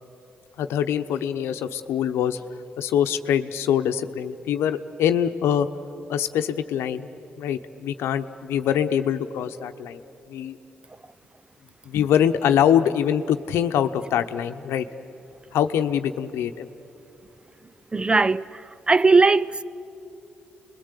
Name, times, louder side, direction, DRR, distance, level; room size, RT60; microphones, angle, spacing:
voice 1, 0.6-2.4 2.8-5.7 6.1-7.1 7.4-10.0 10.3-10.6 11.8-14.9 15.5-16.7, left 9 dB, 85° left, 0.9 m, -24 dB
voice 2, 17.9-19.6, right 3 dB, 25° right, 0.6 m, -19 dB
29.5 x 21.5 x 8.4 m
cardioid pair, 65°, 4 cm